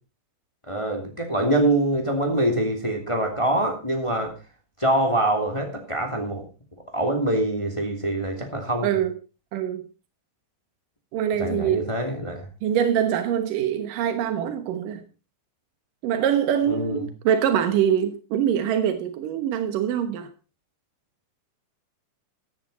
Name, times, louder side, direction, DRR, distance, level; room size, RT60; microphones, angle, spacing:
voice 1, 0.7-4.3 4.8-6.4 6.9-8.9 11.4-12.4 16.6-17.0, right 1 dB, 15° left, 3 dB, 1.2 m, -24 dB
voice 2, 8.8-9.2 9.5-9.8 11.1-11.9 12.6-15.1 16.0-20.3, right 9 dB, 80° right, 8 dB, 2.0 m, -24 dB
16.0 x 10.5 x 4.2 m, 0.33 s
omnidirectional pair, 5.6 m